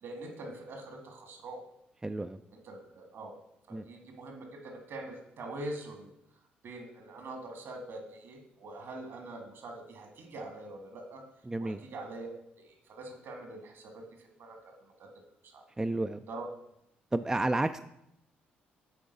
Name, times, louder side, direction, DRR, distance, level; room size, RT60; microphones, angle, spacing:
voice 1, 0.0-1.6 2.5-3.3 3.7-6.1 6.6-11.2 11.6-12.3 12.6-15.1 15.4-15.6 16.3-16.5, right 2 dB, 65° right, 4 dB, 1.9 m, -44 dB
voice 2, 2.0-2.4 3.7-3.8 11.5-11.8 15.8-16.2 17.1-17.8, right 2 dB, 15° right, 9 dB, 0.4 m, -31 dB
9.1 x 3.9 x 5.3 m, 0.79 s
supercardioid pair, 65°, 4 cm